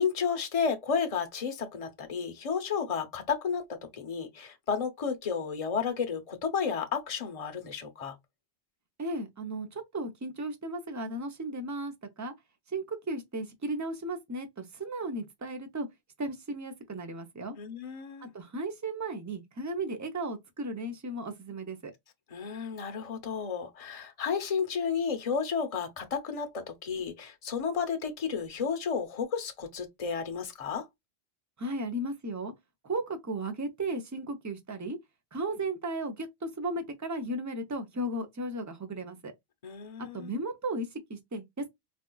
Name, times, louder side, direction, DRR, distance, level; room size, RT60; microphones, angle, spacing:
voice 1, 0.0-8.2 17.6-18.3 22.3-30.9 39.6-40.3, left 6 dB, 35° left, 0.7 m, -32 dB
voice 2, 9.0-12.3 12.7-15.9 16.2-17.6 18.2-21.9 31.6-32.5 32.8-35.0 35.3-39.3 40.0-41.7, right 2 dB, 20° right, 0.5 m, -35 dB
4.2 x 2.3 x 2.2 m
omnidirectional pair, 1.1 m